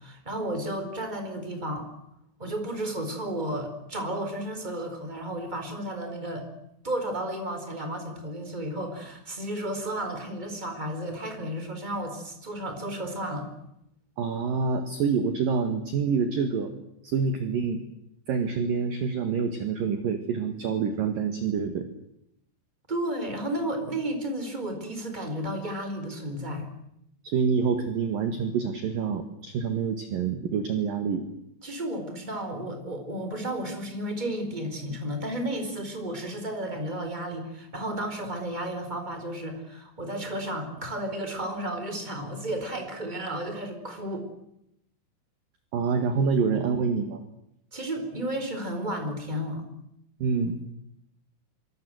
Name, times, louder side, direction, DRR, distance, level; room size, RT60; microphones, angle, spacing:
voice 1, 0.0-1.9 2.4-6.5 6.8-13.5 22.9-26.7 31.6-44.3 47.7-49.6, right 1 dB, 10° right, 6 dB, 4.0 m, -33 dB
voice 2, 14.2-16.7 17.0-17.8 18.3-21.9 27.2-31.2 45.7-47.2 50.2-50.7, right 5 dB, 60° right, 7 dB, 2.9 m, -27 dB
26.5 x 24.5 x 7.9 m, 0.80 s
omnidirectional pair, 5.6 m